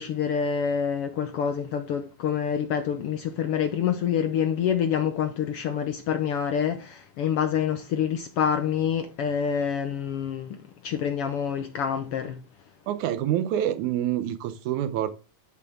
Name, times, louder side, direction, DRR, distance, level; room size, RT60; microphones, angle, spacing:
voice 1, 0.0-12.4, left 8 dB, 70° left, 1.4 m, -27 dB
voice 2, 12.9-15.1, right 11 dB, 85° right, 2.2 m, -27 dB
12.0 x 6.1 x 3.6 m
omnidirectional pair, 3.4 m